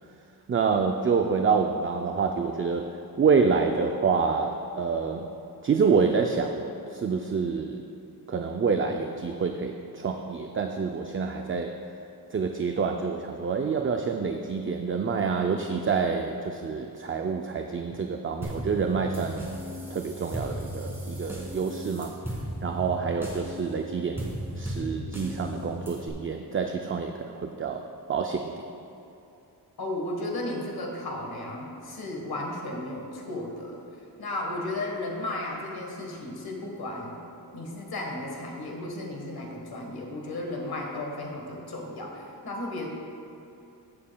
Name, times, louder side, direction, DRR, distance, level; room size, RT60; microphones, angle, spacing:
voice 1, 0.5-2.9 3.2-5.3 5.6-7.8 8.3-11.8 12.3-19.5 19.9-22.1 22.6-28.6, right 5 dB, 35° right, 4 dB, 0.4 m, -27 dB
sound 1, 18.4-26.1, equal, 5° right, 1.8 m, -36 dB
voice 2, 29.8-33.8 34.2-37.2 37.5-42.9, left 1 dB, 70° left, 0 dB, 1.4 m, -34 dB
15.0 x 7.5 x 2.3 m, 2.8 s
wide cardioid pair, 120°, 39 cm